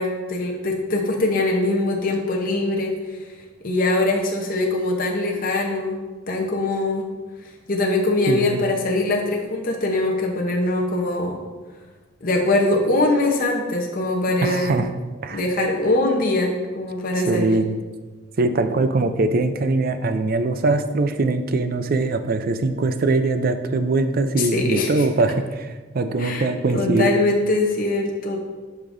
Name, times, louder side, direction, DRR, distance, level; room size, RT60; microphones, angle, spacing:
voice 1, 0.0-2.9 3.6-7.0 7.7-11.4 12.2-14.8 15.3-17.5 24.4-25.1 26.2-26.5 26.7-28.4, left 2 dB, 45° left, 0 dB, 0.8 m, -22 dB
voice 2, 8.3-8.6 14.4-14.9 15.2-15.4 17.3-17.8 18.4-25.7 25.9-27.1, right 3 dB, 50° right, 9 dB, 0.5 m, -22 dB
10.5 x 5.1 x 2.6 m, 1.3 s
head